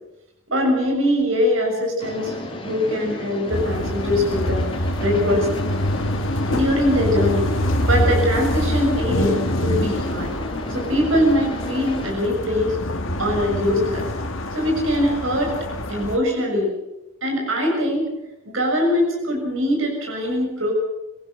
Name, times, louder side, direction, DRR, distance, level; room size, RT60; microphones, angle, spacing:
voice 1, 0.5-5.5 6.5-7.5 7.9-10.3 10.7-12.8 13.2-14.1 14.5-15.5 15.9-16.7 17.2-18.1 18.4-20.7, left 1 dB, 60° right, 0 dB, 6.7 m, -22 dB
sound 1, 2.0-12.1, left 1 dB, 25° left, 4.0 m, -33 dB
sound 2, 3.5-16.2, left 1 dB, 60° left, 2.1 m, -25 dB
24.5 x 18.5 x 6.5 m, 0.93 s
head